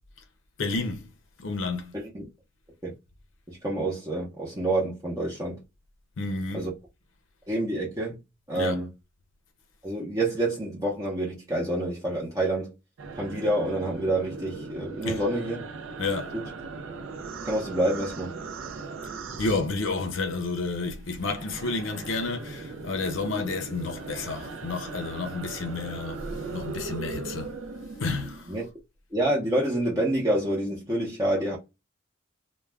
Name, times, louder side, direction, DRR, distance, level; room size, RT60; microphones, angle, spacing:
voice 1, 0.6-1.1 1.4-2.0 6.2-6.7 8.5-8.8 15.0-15.2 16.0-16.4 19.4-27.5 28.0-28.5, left 3 dB, 75° left, 0.5 m, -30 dB
voice 2, 1.9-2.2 2.8-2.9 3.5-5.6 6.5-6.7 7.5-8.2 8.5-8.9 9.8-12.7 13.2-15.6 16.3-16.5 17.4-18.3 28.5-28.7 29.1-31.6, right 1 dB, 20° right, 0.6 m, -27 dB
sound 1, 13.0-20.3 20.6-28.6, right 4 dB, 90° right, 0.4 m, -39 dB
2.3 x 2.1 x 3.2 m
head